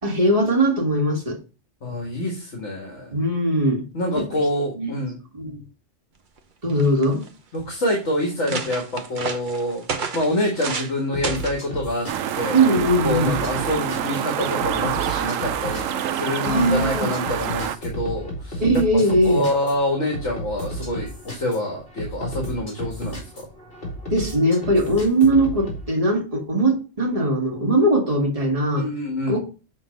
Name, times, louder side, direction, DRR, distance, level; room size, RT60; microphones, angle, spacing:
voice 1, 0.0-1.4 3.1-3.9 4.2-4.3 4.8-4.9 5.3-5.6 6.6-7.3 8.5-8.6 12.5-13.4 16.4-17.1 18.6-19.5 24.1-28.9 29.3-29.4, right 1 dB, 30° right, 1.9 m, -20 dB
voice 2, 1.8-3.1 3.9-5.2 7.5-9.8 10.1-12.1 12.3-12.7 13.0-15.8 16.1-18.6 18.9-23.5 28.7-29.4, left 1 dB, 65° left, 1.9 m, -26 dB
sound 1, 6.4-6.5 6.7-7.3 7.9-8.0 8.3-10.9 11.2-11.6 12.4-12.7, right 5 dB, 45° right, 0.9 m, -31 dB
sound 2, 11.1-25.8, right 1 dB, 45° left, 2.8 m, -34 dB
sound 3, 12.1-17.8, right 10 dB, 90° right, 1.0 m, -27 dB
7.3 x 3.8 x 5.1 m
omnidirectional pair, 1.3 m